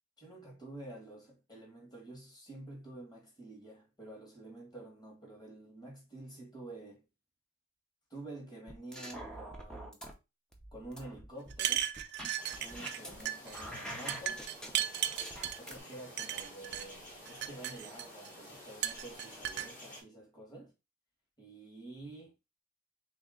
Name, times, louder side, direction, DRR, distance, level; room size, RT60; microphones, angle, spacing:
voice 1, 0.2-7.0 8.1-10.0 10.7-11.9 12.6-14.4 15.6-20.7 21.4-22.3, right 2 dB, 20° left, 1.5 m, -49 dB
sound 1, 8.7-10.1 10.5-13.2 13.5-15.8, right 1 dB, 5° left, 0.6 m, -45 dB
sound 2, 11.5-13.0 13.2-13.6 14.1-15.6 16.2-16.8 17.3-18.3 18.8-19.7, right 11 dB, 50° right, 0.3 m, -35 dB
sound 3, 12.4-20.0, left 1 dB, 40° left, 1.6 m, -51 dB
3.2 x 2.8 x 3.6 m
head